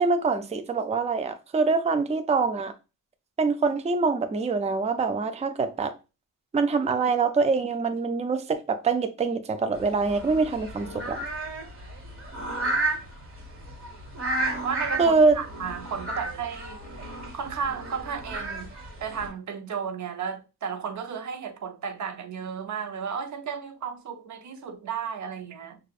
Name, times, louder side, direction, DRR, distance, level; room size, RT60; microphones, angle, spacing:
voice 1, 0.0-2.7 3.4-6.0 6.5-11.2 15.0-15.4, right 4 dB, 20° right, 0.4 m, -24 dB
sound 1, 9.7-19.3, right 2 dB, 40° right, 1.5 m, -33 dB
voice 2, 14.6-16.8 17.3-18.7 19.0-25.8, right 6 dB, 55° right, 0.7 m, -33 dB
6.3 x 2.4 x 2.4 m
cardioid pair, 100°, 34 cm